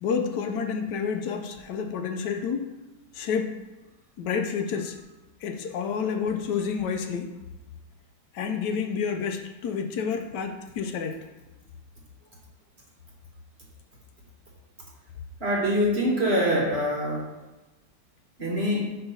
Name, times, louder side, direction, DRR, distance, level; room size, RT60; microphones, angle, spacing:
voice 1, 0.0-2.7 3.1-3.6 4.2-5.0 5.4-7.4 8.3-11.2, left 6 dB, 75° left, 5 dB, 1.2 m, -29 dB
voice 2, 15.4-17.3 18.4-19.0, equal, 45° right, -2 dB, 1.0 m, -24 dB
4.5 x 4.3 x 5.4 m, 1.1 s
omnidirectional pair, 1.9 m